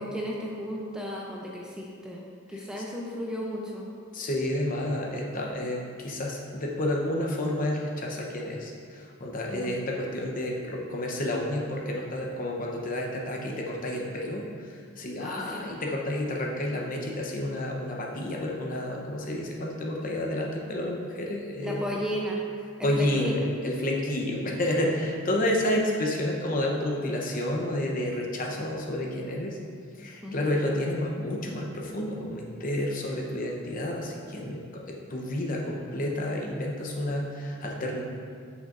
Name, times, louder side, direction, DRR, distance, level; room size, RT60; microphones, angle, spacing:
voice 1, 0.0-3.9 9.5-9.8 15.2-15.6 21.6-22.5 22.8-23.3 30.2-30.6, equal, 5° right, -3 dB, 0.5 m, -34 dB
voice 2, 4.1-21.9 22.8-29.6 30.0-38.0, left 1 dB, 40° left, -1 dB, 0.8 m, -30 dB
8.3 x 6.3 x 2.5 m, 2.2 s
head